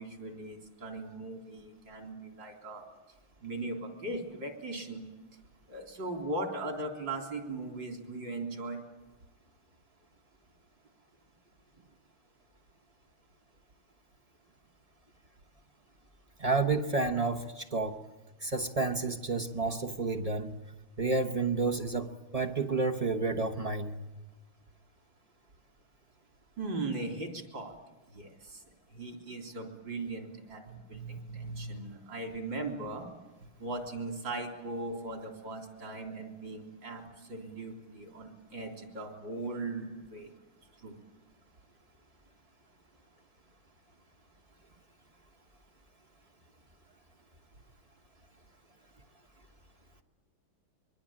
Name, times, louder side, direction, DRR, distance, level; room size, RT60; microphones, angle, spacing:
voice 1, 0.0-2.8 3.4-5.0 5.7-8.8 26.6-27.7 28.1-28.6 28.9-33.1 33.6-40.3 40.8-41.0, right 2 dB, 60° right, 2 dB, 4.2 m, -39 dB
voice 2, 16.4-18.0 18.4-20.5 21.0-23.9 30.7-31.8, right 3 dB, 30° right, 4 dB, 0.7 m, -31 dB
24.0 x 23.0 x 8.8 m, 1.2 s
omnidirectional pair, 2.2 m